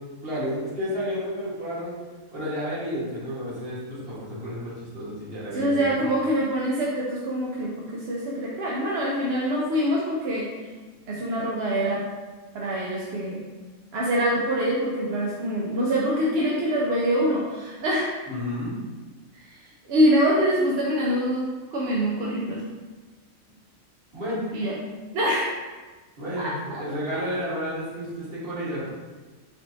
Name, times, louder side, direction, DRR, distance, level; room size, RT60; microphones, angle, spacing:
voice 1, 0.2-1.9 2.3-5.9 18.3-18.8 24.1-24.4 26.2-28.9, equal, 45° right, -8 dB, 1.6 m, -31 dB
voice 2, 5.5-10.5 11.1-12.0 12.5-13.4 13.9-18.1 19.3-22.7 24.5-24.8 25.1-25.5 26.4-26.8, equal, 60° right, -4 dB, 0.7 m, -25 dB
5.3 x 3.0 x 2.6 m, 1.3 s
omnidirectional pair, 1.4 m